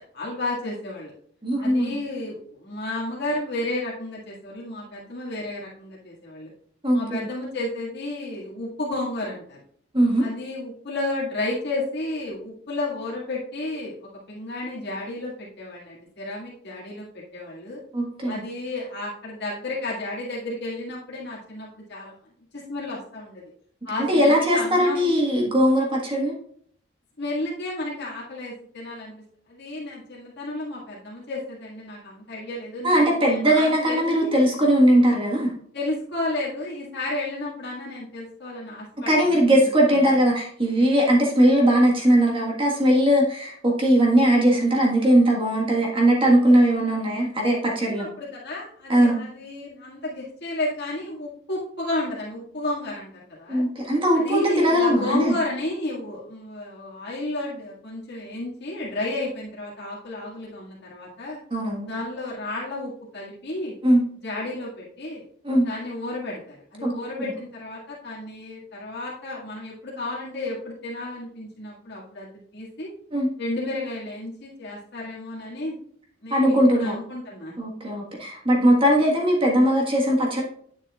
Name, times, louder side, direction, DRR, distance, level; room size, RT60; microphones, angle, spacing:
voice 1, 0.1-1.1 1.6-6.5 6.9-9.6 10.2-13.9 14.3-17.8 18.3-22.1 22.5-23.4 23.8-25.0 27.2-29.2 29.5-34.3 35.7-39.7 40.0-40.1 47.8-53.6 54.1-61.4 61.8-63.7 64.2-65.2 65.6-72.9 73.4-75.8 76.2-77.6, left 2 dB, 60° left, -5 dB, 2.0 m, -32 dB
voice 2, 1.4-1.9 6.8-7.3 9.9-10.2 17.9-18.5 24.1-26.3 32.8-35.5 39.1-48.1 48.9-49.2 53.5-55.4 61.5-61.9 63.8-64.0 65.4-65.7 66.8-67.3 73.1-73.3 76.3-76.9 77.6-80.4, equal, 25° right, -1 dB, 1.6 m, -20 dB
9.4 x 7.4 x 2.4 m, 0.62 s
head